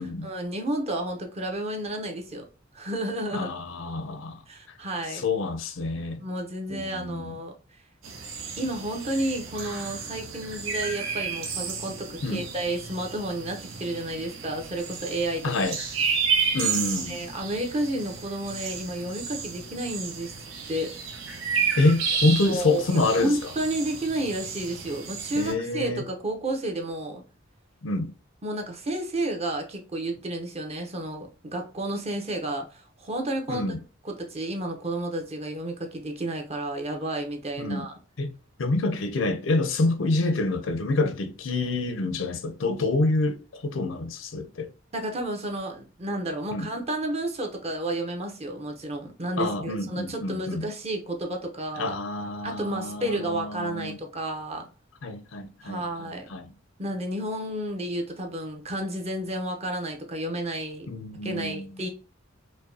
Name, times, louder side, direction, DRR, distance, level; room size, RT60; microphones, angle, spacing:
voice 1, 0.2-2.4 2.7-3.5 4.5-5.2 6.2-7.5 8.6-15.5 17.1-20.3 20.7-20.9 22.4-27.2 28.4-33.7 34.0-37.9 44.9-51.9 52.4-54.7 55.6-56.3 56.8-60.9 61.2-61.9, right 1 dB, 30° right, 0.7 m, -31 dB
voice 2, 3.3-4.4 5.1-6.2 6.7-7.4 12.2-12.5 15.4-15.8 16.5-17.3 21.8-23.3 25.4-26.1 27.8-28.1 33.5-33.8 37.6-37.9 38.2-38.3 38.6-44.7 46.5-46.7 49.4-50.7 51.8-54.0 55.0-56.5 60.9-61.8, left 2 dB, 75° left, 0.6 m, -27 dB
sound 1, 8.0-25.5, right 6 dB, 90° right, 0.8 m, -32 dB
4.9 x 2.2 x 2.6 m
head